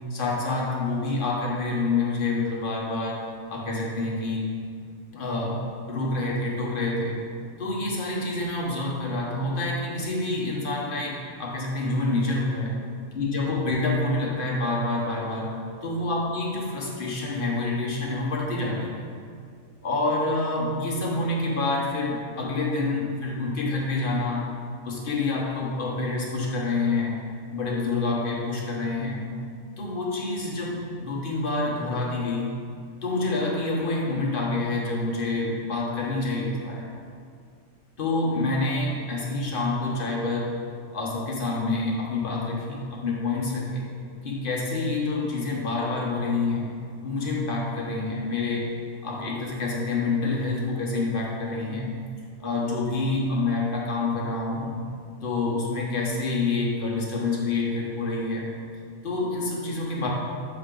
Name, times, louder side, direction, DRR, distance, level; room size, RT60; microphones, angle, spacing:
voice 1, 0.1-3.2 3.5-4.5 5.1-7.2 7.6-12.8 13.1-15.5 15.8-19.1 19.8-24.5 24.8-27.2 27.5-29.2 29.8-32.5 33.0-36.9 38.0-40.6 40.9-43.9 44.2-46.7 47.0-48.7 49.0-51.9 52.4-54.8 55.2-58.5 59.0-60.1, left 2 dB, 40° left, -3 dB, 1.1 m, -27 dB
7.0 x 4.9 x 3.7 m, 2.2 s
omnidirectional pair, 1.5 m